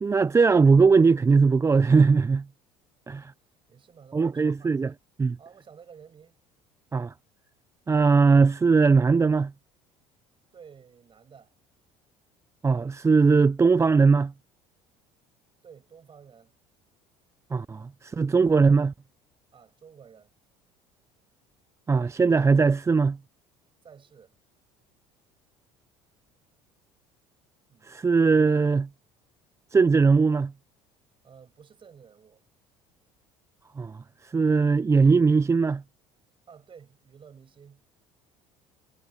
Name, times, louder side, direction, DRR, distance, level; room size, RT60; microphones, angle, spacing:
voice 1, 0.0-2.4 3.1-3.2 4.1-4.9 5.2-5.4 6.9-7.1 7.9-9.5 12.6-14.3 17.5-18.9 21.9-23.2 27.8-28.9 29.7-30.5 33.8-35.8, right 4 dB, 20° right, 0.5 m, -20 dB
voice 2, 3.7-4.7 5.4-6.4 10.5-11.5 15.6-16.5 19.5-20.3 23.8-24.3 27.7-28.0 31.2-32.4 36.5-37.8, right 7 dB, 35° right, 6.8 m, -51 dB
supercardioid pair, 80°, 15 cm